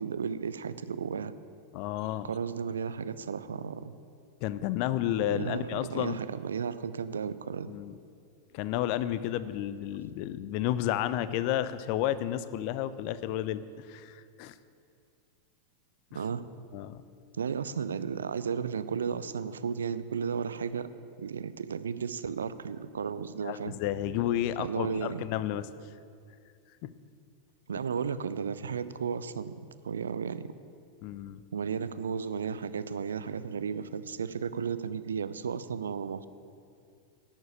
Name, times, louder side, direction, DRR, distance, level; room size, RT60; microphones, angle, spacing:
voice 1, 0.0-1.3 2.2-3.9 5.3-7.7 16.1-16.4 17.4-20.9 21.2-23.7 24.6-25.2 27.7-29.5 29.8-30.5 31.5-36.3, right 6 dB, 70° right, 14 dB, 0.5 m, -34 dB
voice 2, 1.7-2.3 4.4-6.2 7.7-7.9 8.5-14.5 16.7-17.0 23.4-25.7 26.8-26.9 31.0-31.4, left 12 dB, 45° left, 15 dB, 0.5 m, -31 dB
11.5 x 7.4 x 8.9 m, 2.3 s
figure-of-eight pair, 90°, 0 cm